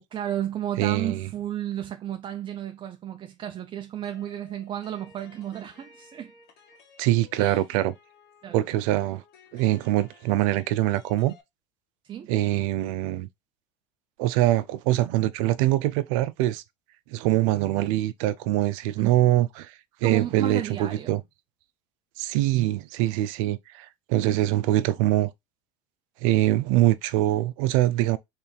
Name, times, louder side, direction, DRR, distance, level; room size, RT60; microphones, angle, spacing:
voice 1, 0.1-6.3 7.4-7.6 8.4-8.7 12.0-12.3 19.0-19.1 20.0-21.2, right 10 dB, 30° right, 0.5 m, -33 dB
voice 2, 0.8-1.3 7.0-7.9 8.5-9.2 9.5-11.3 12.3-13.3 14.2-16.6 17.1-19.7 20.0-21.2 22.2-25.3 26.2-28.2, right 15 dB, 75° right, 0.6 m, -23 dB
sound 1, 4.0-11.4, left 4 dB, 65° left, 1.7 m, -56 dB
3.4 x 3.3 x 4.3 m
supercardioid pair, 100°, 17 cm